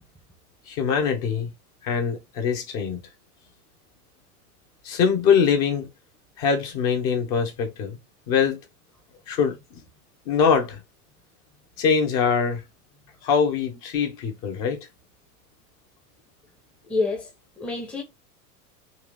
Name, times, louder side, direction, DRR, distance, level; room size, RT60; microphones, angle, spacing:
voice 1, 0.7-1.5 1.8-3.0 4.8-5.9 6.4-8.0 8.3-8.6 9.3-9.8 10.3-10.8 11.8-12.6 13.2-14.8, left 6 dB, 40° left, 1.6 m, -23 dB
voice 2, 16.9-17.3 17.6-18.0, left 3 dB, ahead, 0.9 m, -27 dB
4.5 x 3.2 x 3.4 m
figure-of-eight pair, 90°, 46 cm